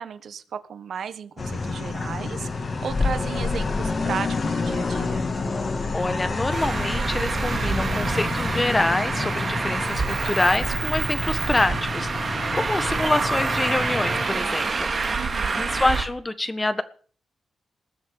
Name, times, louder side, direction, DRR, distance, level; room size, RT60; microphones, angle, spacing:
voice 1, 0.0-5.2 15.1-15.7, right 7 dB, 60° right, 13 dB, 1.4 m, -35 dB
sound 1, 1.4-14.2, left 3 dB, 30° left, 2.7 m, -29 dB
voice 2, 5.9-14.9 15.5-16.8, left 2 dB, 15° left, 12 dB, 1.5 m, -26 dB
Traffic noise roadway noise, 6.5-16.0, right 4 dB, 35° right, 2.5 m, -27 dB
20.5 x 7.9 x 8.9 m, 0.44 s
wide cardioid pair, 150°, 0 cm